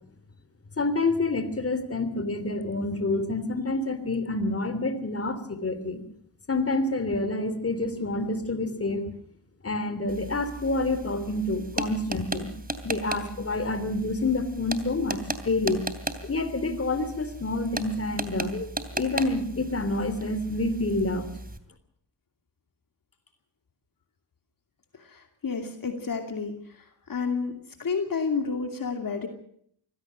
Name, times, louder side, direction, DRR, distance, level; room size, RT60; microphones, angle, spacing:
voice 1, 0.8-6.0 6.5-9.1 9.6-12.5 12.8-15.9 16.2-18.7 18.9-21.3, left 2 dB, 35° left, 11 dB, 3.1 m, -28 dB
sound 1, 10.1-21.6, right 2 dB, 20° right, 2.8 m, -37 dB
voice 2, 25.0-26.6 27.1-29.3, left 5 dB, 55° left, 5 dB, 2.7 m, -30 dB
24.0 x 17.0 x 6.4 m, 0.66 s
cardioid pair, 70°, 40 cm